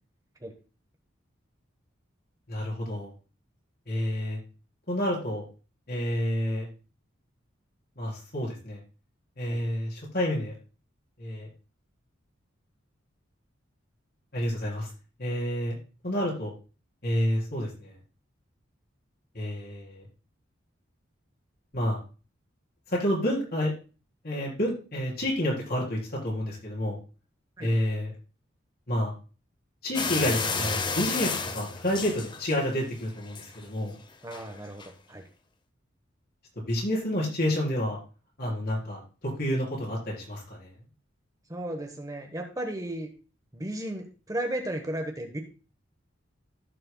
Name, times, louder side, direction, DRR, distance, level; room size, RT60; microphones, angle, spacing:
voice 1, 2.5-3.1 3.9-4.4 4.9-5.4 5.9-6.7 8.0-8.8 9.4-10.5 11.2-11.5 14.3-14.9 15.2-15.8 16.0-16.5 17.0-17.9 19.3-20.0 21.7-22.0 22.9-23.7 24.2-27.0 27.6-28.1 28.9-29.1 29.8-34.0 36.7-38.0 38.4-40.7, equal, 50° left, -4 dB, 4.1 m, -29 dB
sound 1, 29.9-32.8 33.2-33.6 34.3-34.4 34.8-34.9, left 4 dB, 25° left, 0.7 m, -31 dB
voice 2, 34.2-35.2 41.5-43.1 43.5-45.4, right 1 dB, 20° right, 4 dB, 1.0 m, -34 dB
15.5 x 6.5 x 2.2 m, 0.34 s
head